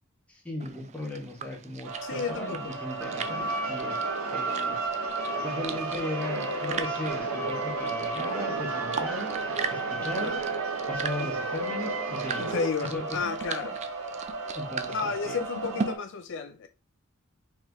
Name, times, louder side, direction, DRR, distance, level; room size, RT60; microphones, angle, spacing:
voice 1, 0.3-4.0 4.3-4.8 5.4-9.4 9.7-10.3 10.9-12.5 12.8-13.2 14.5-15.4, left 1 dB, 5° left, 1.3 m, -37 dB
sound 1, 0.6-15.9, right 5 dB, 35° right, 0.4 m, -40 dB
sound 2, 1.8-16.0, right 4 dB, 70° right, 1.6 m, -35 dB
voice 2, 2.0-2.7 10.0-10.4 11.2-11.3 12.4-13.8 14.9-16.7, left 5 dB, 60° left, 0.4 m, -32 dB
sound 3, 3.0-12.7, right 3 dB, 85° right, 1.0 m, -33 dB
4.6 x 3.2 x 3.4 m
head